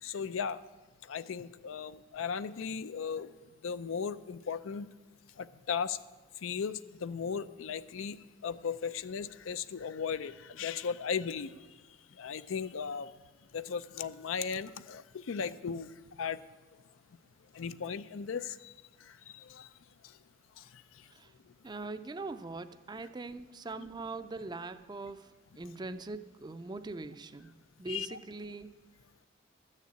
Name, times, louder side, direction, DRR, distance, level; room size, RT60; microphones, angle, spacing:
voice 1, 0.0-0.6 1.0-3.4 3.6-4.9 5.4-6.0 6.4-8.2 8.4-13.1 13.5-16.4 17.5-19.7 20.0-20.2 20.6-21.1 21.5-21.6 23.8-23.9 27.9-28.2, left 6 dB, 85° left, 13 dB, 0.5 m, -37 dB
voice 2, 21.6-25.3 25.6-27.5 27.8-28.7, right 3 dB, 20° right, 11 dB, 0.4 m, -41 dB
13.0 x 6.6 x 8.4 m, 1.2 s
head